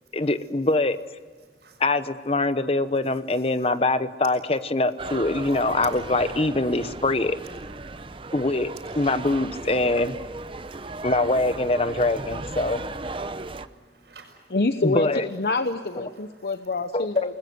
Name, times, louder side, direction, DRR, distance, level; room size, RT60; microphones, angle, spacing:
voice 1, 0.1-1.0 1.8-7.4 8.3-10.1 11.0-12.8 14.8-15.2 16.9-17.3, left 2 dB, 35° left, 12 dB, 0.9 m, -23 dB
sound 1, 5.0-13.7, right 3 dB, 30° right, 0.8 m, -36 dB
voice 2, 10.5-11.1 13.2-14.5, right 4 dB, 65° right, -5 dB, 5.2 m, -54 dB
voice 3, 14.5-17.4, left 3 dB, 60° left, 8 dB, 0.9 m, -27 dB
28.5 x 20.5 x 7.9 m, 1.5 s
head